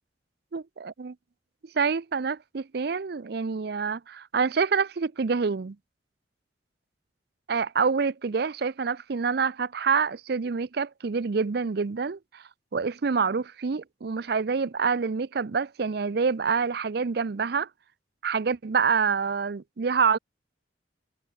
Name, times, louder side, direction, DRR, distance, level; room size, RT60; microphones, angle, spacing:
voice 1, 0.5-1.1 1.7-5.8 7.5-12.4 12.7-17.7 18.2-20.2, right 5 dB, 60° right, 0.5 m, -27 dB
head